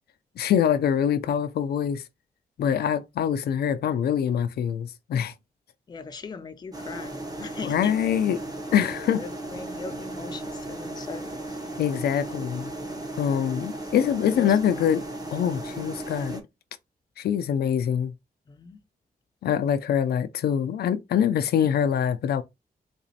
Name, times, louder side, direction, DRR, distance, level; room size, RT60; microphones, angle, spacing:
voice 1, 0.4-2.0 2.6-5.3 7.6-8.4 8.7-9.2 11.8-12.7 13.2-15.0 15.3-16.4 17.2-18.1 19.4-22.4, left 8 dB, 85° left, 0.4 m, -24 dB
voice 2, 5.9-8.2 8.8-11.6 14.4-14.9 18.5-18.8, left 4 dB, 25° left, 0.4 m, -40 dB
sound 1, 6.7-16.4, right 2 dB, 25° right, 0.7 m, -36 dB
4.0 x 2.9 x 2.7 m
wide cardioid pair, 150°, 16 cm